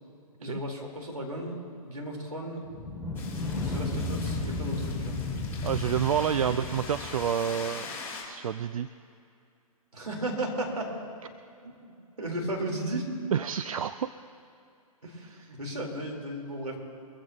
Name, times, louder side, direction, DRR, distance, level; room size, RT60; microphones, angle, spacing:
voice 1, 0.4-1.6 1.8-2.6 3.6-5.2 6.4-6.8 9.9-10.9 11.6-11.7 12.2-13.1 15.0-16.8, right 1 dB, 85° right, -1 dB, 4.1 m, -35 dB
sound 1, 2.6-7.5, left 2 dB, 5° right, 2.2 m, -33 dB
sound 2, 3.1-8.2, left 4 dB, 10° left, 4.2 m, -42 dB
voice 2, 5.6-7.9 8.3-8.9 13.3-14.1, right 8 dB, 65° right, 12 dB, 0.5 m, -28 dB
23.5 x 15.0 x 3.0 m, 2.5 s
figure-of-eight pair, 125°, 19 cm